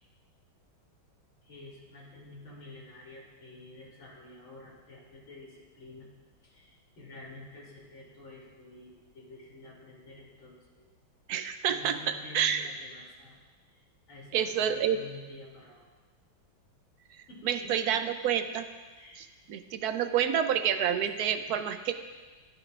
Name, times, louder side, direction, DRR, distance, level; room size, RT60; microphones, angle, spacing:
voice 1, 1.4-6.1 6.4-10.9 11.6-13.4 13.7-15.9 17.3-17.9 18.9-19.2 21.2-21.5, left 2 dB, 75° left, -3 dB, 3.5 m, -49 dB
voice 2, 11.3-12.7 14.3-15.0 17.4-18.7 19.2-21.9, right 9 dB, 75° right, 9 dB, 0.9 m, -28 dB
21.0 x 11.0 x 2.4 m, 1.3 s
omnidirectional pair, 2.2 m